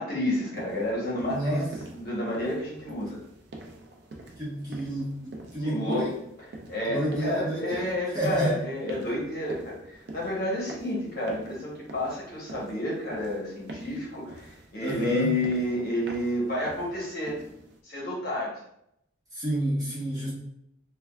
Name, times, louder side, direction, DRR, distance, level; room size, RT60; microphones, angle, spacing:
voice 1, 0.0-3.2 5.6-6.1 6.7-17.4 17.8-18.5, left 1 dB, 50° left, -5 dB, 0.9 m, -30 dB
sound 1, 0.5-17.8, right 2 dB, 55° right, 0.4 m, -45 dB
voice 2, 1.3-1.7 4.4-6.2 6.8-8.6 14.8-15.3 19.3-20.3, right 1 dB, 20° right, -8 dB, 0.9 m, -29 dB
3.3 x 2.2 x 2.2 m, 0.76 s
head